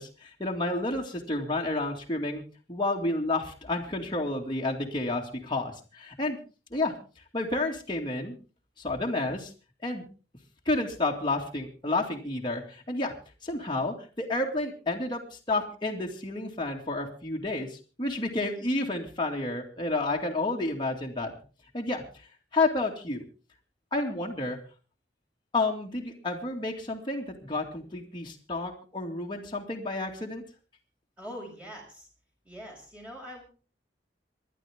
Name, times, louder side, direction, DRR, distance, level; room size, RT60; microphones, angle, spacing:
voice 1, 0.0-2.4 2.7-6.4 6.7-6.9 7.3-8.4 8.8-9.5 9.8-10.0 10.7-13.1 13.4-15.2 15.5-21.3 21.7-22.0 22.5-23.2 23.9-24.6 25.5-30.4, left 2 dB, 25° left, -1 dB, 2.2 m, -30 dB
voice 2, 31.2-32.1 32.4-33.4, equal, 5° right, 0 dB, 6.0 m, -43 dB
26.5 x 11.0 x 3.6 m, 0.35 s
head